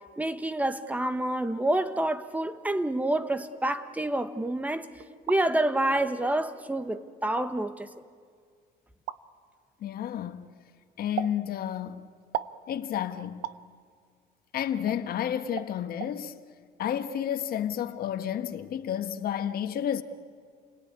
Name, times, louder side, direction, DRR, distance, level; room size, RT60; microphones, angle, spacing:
voice 1, 0.2-4.9 5.3-7.9, right 1 dB, 10° right, 1.3 m, -28 dB
sound 1, 5.0-5.4 6.3-6.4 7.2-7.5 9.1-9.2 11.2-11.4 12.3-12.6 13.4-13.6 14.9-15.0 15.6-15.7 16.0-16.1, right 12 dB, 80° right, 0.8 m, -34 dB
voice 2, 9.8-10.5 11.0-12.0 12.7-13.5 14.5-16.4 16.8-20.0, left 10 dB, 60° left, 1.5 m, -31 dB
29.5 x 20.0 x 9.7 m
cardioid pair, 110°, 17 cm